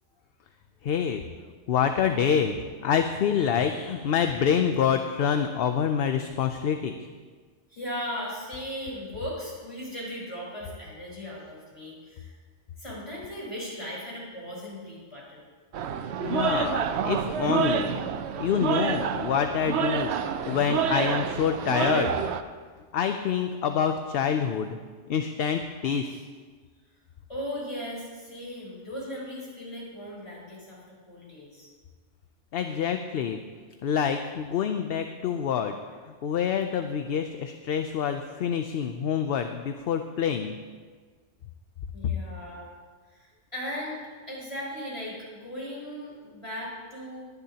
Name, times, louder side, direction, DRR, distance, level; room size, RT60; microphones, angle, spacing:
voice 1, 0.8-1.2 1.7-2.6 2.8-6.9 16.2-18.0 18.4-20.1 20.5-22.2 22.9-24.8 25.1-26.2 32.5-33.4 33.8-35.8 36.1-40.5, left 7 dB, 60° left, 7 dB, 0.7 m, -26 dB
voice 2, 7.7-12.3 12.8-15.4 27.3-31.7 41.9-42.7 43.1-44.0 44.3-47.2, equal, 25° left, -6 dB, 4.8 m, -37 dB
sound 1, 15.7-22.4, right 7 dB, 70° right, 0.8 m, -28 dB
20.5 x 10.5 x 2.8 m, 1.5 s
omnidirectional pair, 1.2 m